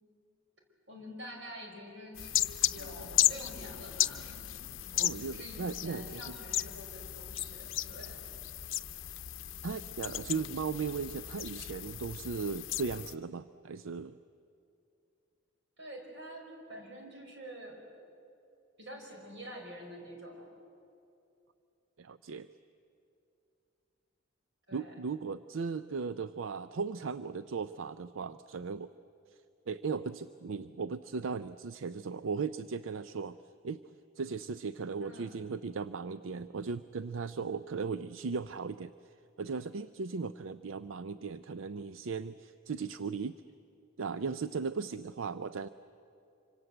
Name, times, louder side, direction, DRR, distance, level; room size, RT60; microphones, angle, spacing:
voice 1, 0.9-4.2 5.3-8.2 15.8-18.0 18.8-20.5 24.7-24.9 35.0-35.4, equal, 65° right, 1 dB, 5.4 m, -47 dB
sound 1, 2.2-13.1, left 13 dB, 75° left, 0.7 m, -35 dB
voice 2, 4.9-6.2 9.6-14.1 22.0-22.5 24.7-28.9 29.7-33.3 33.6-33.8 34.2-38.9 39.4-43.4 44.0-45.7, right 5 dB, 85° right, 13 dB, 0.5 m, -37 dB
26.0 x 25.5 x 7.9 m, 2.6 s
head